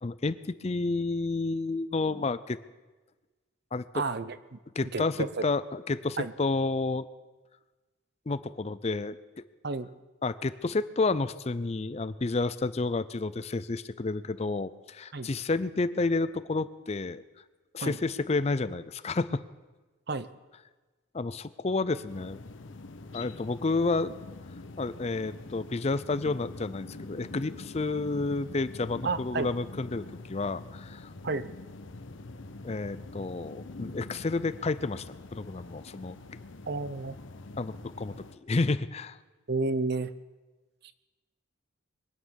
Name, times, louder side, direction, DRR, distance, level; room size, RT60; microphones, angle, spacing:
voice 1, 0.0-2.6 3.7-4.0 4.8-7.1 8.3-9.2 10.2-17.2 17.7-19.4 21.1-22.4 23.1-24.2 24.8-31.1 32.6-36.2 37.6-39.2, left 3 dB, 30° left, 15 dB, 0.5 m, -30 dB
voice 2, 3.9-5.4 6.2-6.3 9.6-9.9 15.1-15.3 17.8-18.0 20.1-20.3 29.0-29.5 31.2-31.4 36.7-37.2 39.5-40.1, right 3 dB, 50° right, 14 dB, 0.7 m, -31 dB
sound 1, 22.1-38.4, left 2 dB, 65° left, 1.0 m, -45 dB
23.0 x 9.4 x 6.4 m, 1.2 s
head